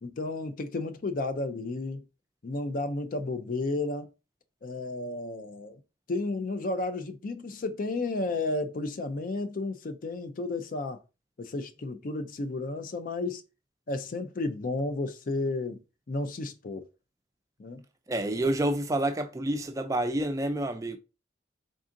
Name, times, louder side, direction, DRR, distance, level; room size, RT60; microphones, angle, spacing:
voice 1, 0.0-2.0 2.4-4.1 4.6-5.8 6.1-11.0 11.4-13.4 13.9-15.8 16.1-16.8 17.6-17.8, left 2 dB, 45° left, 0.4 m, -32 dB
voice 2, 18.1-21.0, right 1 dB, 15° right, 0.3 m, -28 dB
3.8 x 3.6 x 2.5 m
head